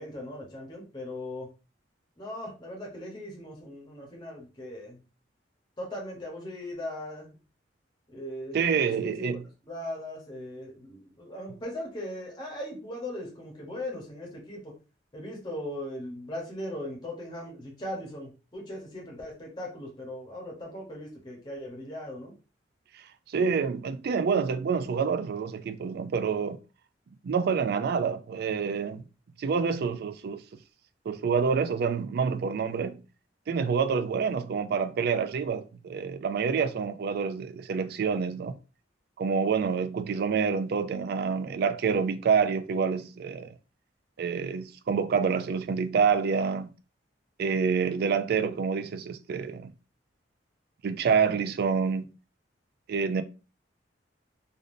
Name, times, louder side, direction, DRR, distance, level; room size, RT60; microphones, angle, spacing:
voice 1, 0.0-1.5 2.2-5.0 5.8-7.4 8.1-8.6 9.0-9.4 9.7-14.7 15.1-22.3, left 1 dB, 25° left, 1.0 m, -39 dB
voice 2, 8.5-9.4 23.3-26.6 27.2-29.0 29.4-30.4 31.1-33.0 33.5-38.6 39.2-43.5 44.2-46.7 47.4-49.7 50.8-52.1 52.9-53.2, right 6 dB, 60° right, 0.3 m, -27 dB
3.4 x 2.5 x 2.5 m
head